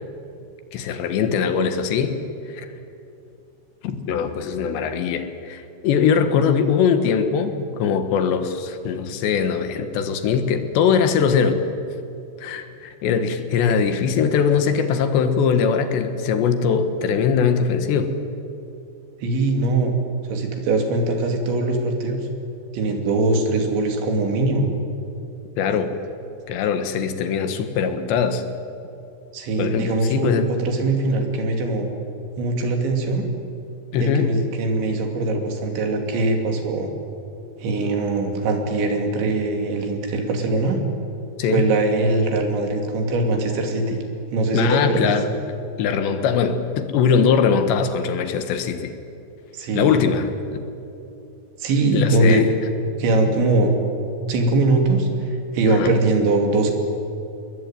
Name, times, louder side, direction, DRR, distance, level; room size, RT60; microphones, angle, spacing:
voice 1, 0.7-2.2 2.5-2.7 3.8-11.6 12.4-18.2 25.6-25.9 26.5-28.4 29.6-30.5 33.9-34.3 41.4-41.7 44.5-45.3 45.8-48.9 49.7-50.6 51.9-52.5 55.7-55.9, left 6 dB, 75° left, 8 dB, 3.7 m, -21 dB
voice 2, 19.2-19.9 20.3-22.2 22.7-24.7 29.3-31.9 32.4-33.2 34.0-36.9 37.6-40.8 41.5-44.0 44.3-45.2 49.5-50.0 51.6-52.4 53.0-53.8 54.3-56.7, right 2 dB, 85° right, 3 dB, 5.2 m, -21 dB
28.5 x 21.5 x 9.2 m, 2.7 s
omnidirectional pair, 5.1 m